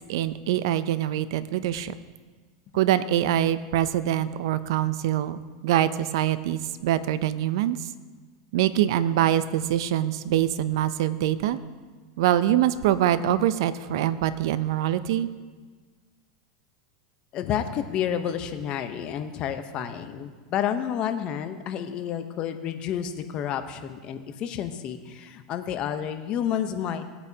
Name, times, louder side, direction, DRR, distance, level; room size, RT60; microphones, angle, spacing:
voice 1, 0.1-1.9 2.7-7.9 8.5-11.6 12.2-15.3, right 12 dB, 70° right, 14 dB, 0.5 m, -24 dB
voice 2, 17.3-27.0, left 9 dB, 40° left, 8 dB, 0.9 m, -30 dB
18.0 x 8.6 x 2.8 m, 1.4 s
supercardioid pair, 130°, 2 cm